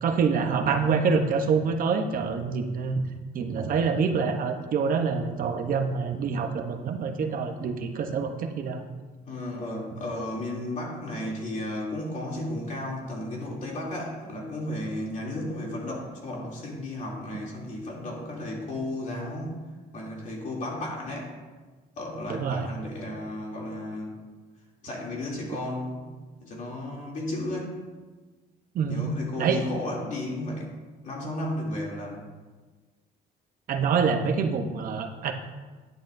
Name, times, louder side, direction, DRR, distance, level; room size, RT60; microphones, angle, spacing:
voice 1, 0.0-3.0 3.3-8.8 22.3-22.7 28.7-29.1 29.4-29.6 33.7-35.3, right 5 dB, 55° right, 5 dB, 0.9 m, -26 dB
voice 2, 9.2-19.6 19.9-21.4 22.0-24.1 24.8-26.1 26.4-27.7 28.9-30.7 31.0-32.2, left 1 dB, 50° left, -3 dB, 2.9 m, -34 dB
10.5 x 9.7 x 2.6 m, 1.3 s
cardioid pair, 110°, 17 cm